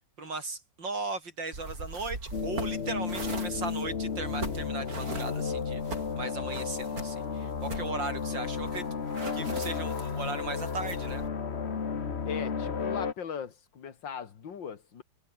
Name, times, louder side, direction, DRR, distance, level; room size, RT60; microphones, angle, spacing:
voice 1, 0.2-8.8 9.3-11.2, right 3 dB, 85° right, 5.8 m, -37 dB
sound 1, 1.5-11.3, right 3 dB, 50° right, 4.6 m, -42 dB
sound 2, 2.3-13.1, left 6 dB, 40° left, 1.5 m, -33 dB
voice 2, 12.3-15.0, left 7 dB, 85° left, 2.6 m, -39 dB
omnidirectional pair, 2.0 m